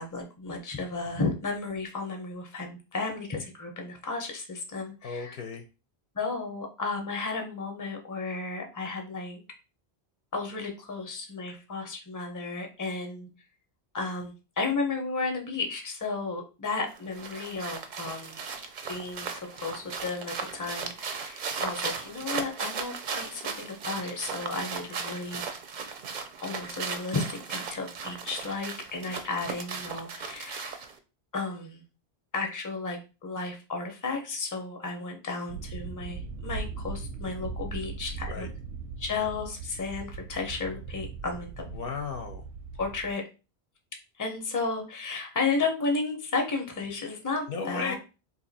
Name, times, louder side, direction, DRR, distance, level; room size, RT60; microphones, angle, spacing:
voice 1, 0.0-5.3 6.1-9.4 10.3-13.3 13.9-18.4 18.9-25.4 26.4-30.8 31.3-31.8 32.3-38.5 39.0-41.6 42.8-43.2 44.2-47.9, left 3 dB, 20° left, 3 dB, 0.6 m, -33 dB
voice 2, 5.0-5.6 38.3-38.5 41.7-42.4 47.5-47.9, left 5 dB, 65° left, 4 dB, 0.7 m, -34 dB
sound 1, 16.9-31.0, right 5 dB, 55° right, 0.5 m, -37 dB
sound 2, 35.5-43.1, right 4 dB, 85° right, 0.8 m, -39 dB
2.8 x 2.5 x 4.0 m, 0.31 s
omnidirectional pair, 1.1 m